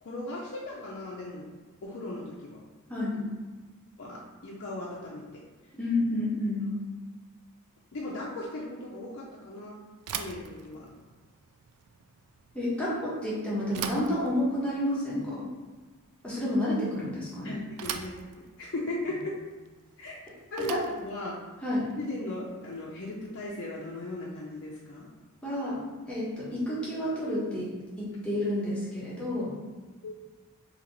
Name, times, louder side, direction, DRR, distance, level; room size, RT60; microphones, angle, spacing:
voice 1, 0.0-1.5 1.8-2.6 4.0-5.4 7.9-9.8 10.2-10.9 17.4-19.3 20.0-20.2 20.5-21.4 22.0-25.1 30.0-30.2, left 2 dB, 55° left, -5 dB, 0.5 m, -37 dB
voice 2, 2.9-3.2 5.8-6.7 12.5-15.4 16.2-17.5 20.7-20.8 21.6-21.8 25.4-25.8 26.1-27.7 28.0-29.5, left 1 dB, 5° left, -9 dB, 1.1 m, -30 dB
Bicycle / Thump thud, 10.0-23.1, right 8 dB, 85° right, 0.3 m, -43 dB
3.0 x 2.8 x 3.9 m, 1.3 s
head